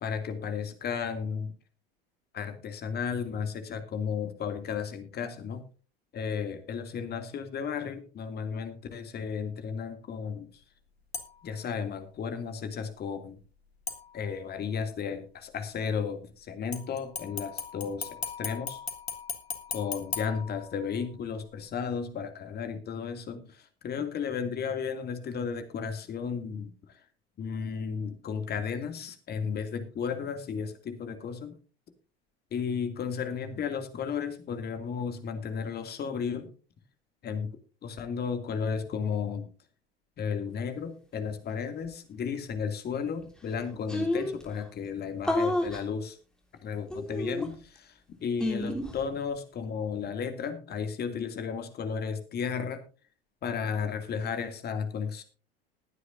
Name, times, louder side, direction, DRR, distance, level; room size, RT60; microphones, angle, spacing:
voice 1, 0.0-1.5 2.3-5.6 6.1-10.5 11.4-13.4 14.1-18.8 19.7-26.7 27.4-31.5 32.5-36.5 37.2-37.5 37.8-39.5 40.2-46.2 46.6-47.9 48.2-52.8 53.4-55.2, left 6 dB, 30° left, 8 dB, 2.5 m, -34 dB
sound 1, 11.1-11.6 13.9-14.6 16.7-21.1 21.5-21.6, left 5 dB, 85° left, 1.8 m, -38 dB
sound 2, 43.2-43.3 43.5-43.6 43.9-44.5 45.2-45.8 46.9-47.8 48.4-49.0, left 1 dB, ahead, 3.3 m, -29 dB
20.5 x 9.6 x 2.6 m, 0.36 s
figure-of-eight pair, 80°, 30 cm